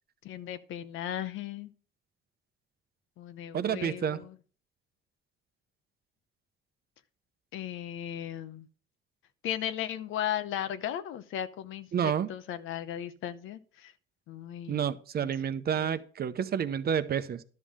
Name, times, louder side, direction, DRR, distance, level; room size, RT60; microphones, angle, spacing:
voice 1, 0.2-1.7 3.2-4.3 7.5-8.7 9.4-13.9 14.3-14.8 15.2-15.3 15.8-16.0, left 10 dB, 85° left, 12 dB, 0.8 m, -36 dB
voice 2, 3.5-4.2 11.9-12.3 14.7-17.4, right 8 dB, 50° right, 12 dB, 0.7 m, -29 dB
11.5 x 5.5 x 5.0 m, 0.42 s
cardioid pair, 90°, 20 cm